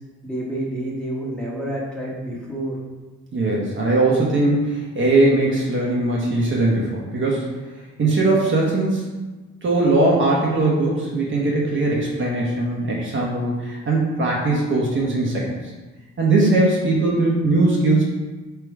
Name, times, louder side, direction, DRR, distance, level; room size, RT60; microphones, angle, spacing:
voice 1, 0.2-2.8, right 1 dB, 5° left, -6 dB, 1.2 m, -28 dB
voice 2, 3.3-7.5 8.0-9.1 9.6-15.5 16.2-18.0, right 2 dB, 40° right, -4 dB, 1.0 m, -20 dB
3.4 x 2.9 x 4.7 m, 1.2 s
cardioid pair, 90°, 30 cm